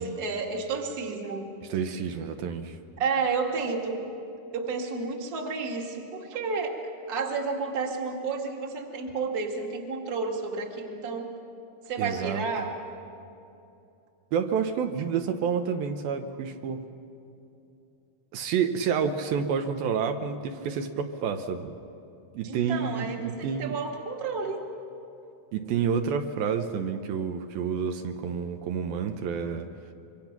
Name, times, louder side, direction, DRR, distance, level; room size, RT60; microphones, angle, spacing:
voice 1, 0.0-1.5 3.0-4.1 4.5-6.8 7.1-11.3 11.9-12.7 22.4-24.6, right 4 dB, 35° right, 1 dB, 1.8 m, -31 dB
voice 2, 1.7-2.8 12.0-12.4 14.3-16.8 18.3-21.7 22.3-23.8 25.5-29.7, right 6 dB, 75° right, 6 dB, 2.6 m, -29 dB
26.5 x 23.5 x 5.9 m, 2.7 s
omnidirectional pair, 4.4 m